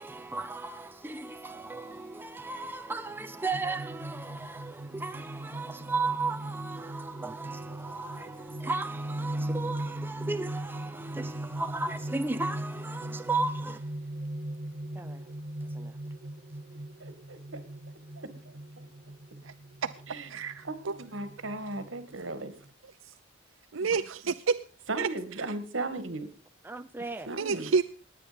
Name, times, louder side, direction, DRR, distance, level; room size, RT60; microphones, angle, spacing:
voice 1, 0.0-13.9 15.0-15.3 15.7-16.0 26.6-27.3, right 3 dB, 10° right, 0.6 m, -35 dB
sound 1, 3.5-22.7, right 1 dB, 45° right, 0.9 m, -39 dB
voice 2, 17.0-17.6 18.2-18.3 20.1-20.3 20.6-22.5 23.8-23.9 24.9-26.3 27.3-27.7, right 2 dB, 70° right, 2.0 m, -36 dB
voice 3, 20.3-20.9 23.7-24.6 25.0-25.1 27.3-27.8, right 5 dB, 90° right, 0.7 m, -29 dB
19.5 x 8.9 x 5.3 m
head